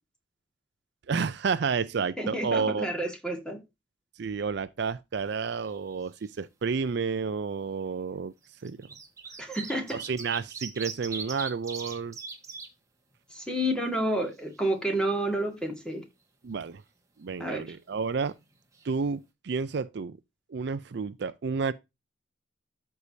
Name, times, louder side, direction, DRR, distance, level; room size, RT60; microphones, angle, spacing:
voice 1, 1.1-2.9 4.2-8.3 8.6-8.9 9.9-12.2 16.4-16.8 17.2-18.4 18.8-20.2 20.5-21.7, right 5 dB, 60° right, 0.4 m, -30 dB
voice 2, 2.2-3.6 9.4-10.0 13.3-16.0 17.4-17.6, right 1 dB, 5° left, 2.0 m, -30 dB
sound 1, 5.2-5.9 6.2-6.3 7.4-7.5 8.4-12.7 13.1-13.2 13.5-14.6 18.4-18.5 18.7-18.8, right 5 dB, 15° right, 1.5 m, -40 dB
13.5 x 4.7 x 2.7 m
head